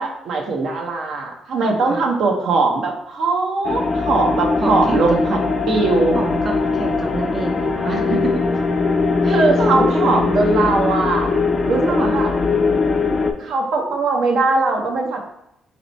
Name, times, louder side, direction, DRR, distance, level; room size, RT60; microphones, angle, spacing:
voice 1, 0.0-5.4 5.7-6.2 9.2-11.3 11.7-12.3 13.4-15.2, right 3 dB, 75° right, 1 dB, 0.7 m, -20 dB
voice 2, 1.6-2.0 4.6-5.2 5.6-5.7 6.1-8.4 9.2-10.7 11.9-12.1, right 2 dB, 40° right, 2 dB, 0.4 m, -27 dB
sound 1, 3.6-13.3, left 4 dB, 40° left, 0.4 m, -20 dB
3.1 x 3.0 x 3.9 m, 0.79 s
cardioid pair, 90°, 0 cm